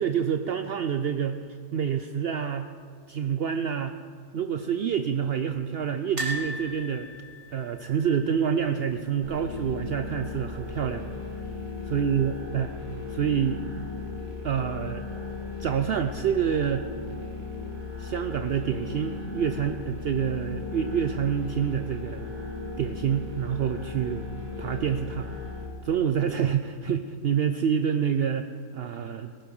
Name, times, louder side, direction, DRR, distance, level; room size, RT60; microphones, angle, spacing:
voice 1, 0.0-1.4 1.7-2.7 3.1-3.9 4.3-7.1 7.5-11.1 11.9-12.7 13.1-13.7 14.4-15.0 15.6-16.9 18.0-22.3 22.8-24.2 24.6-25.3 25.8-29.3, right 8 dB, 70° right, 8 dB, 0.6 m, -27 dB
sound 1, 6.2-9.2 9.5-9.7 9.9-10.0 11.3-11.8 12.3-12.4, equal, 45° right, 2.6 m, -37 dB
sound 2, 9.2-25.7, left 4 dB, 85° right, 2.5 m, -37 dB
19.0 x 11.5 x 5.4 m, 2.2 s
omnidirectional pair, 1.6 m